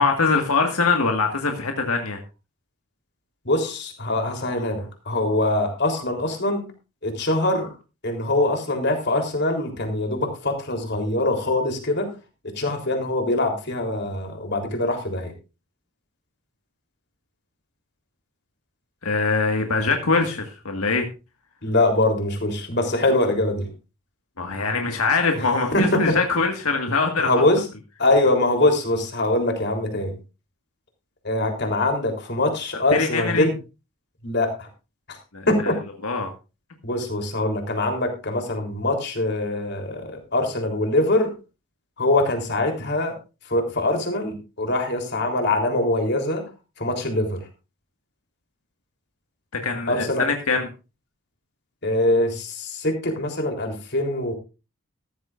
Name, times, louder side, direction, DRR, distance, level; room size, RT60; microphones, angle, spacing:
voice 1, 0.0-2.2 4.3-4.4 19.0-21.1 24.4-27.4 32.9-33.5 35.3-35.7 36.0-36.3 49.5-50.7, left 4 dB, 90° left, 3 dB, 1.8 m, -23 dB
voice 2, 3.5-6.6 7.0-7.7 8.0-12.1 12.6-15.3 21.6-23.7 25.7-26.2 27.2-27.6 28.0-30.1 31.2-33.5 34.2-34.7 35.1-35.2 35.5-35.8 36.8-41.3 42.0-43.2 43.5-46.4 46.8-47.4 49.9-50.3 51.8-54.4, left 2 dB, 50° left, 4 dB, 3.6 m, -23 dB
14.5 x 14.0 x 2.6 m, 0.30 s
head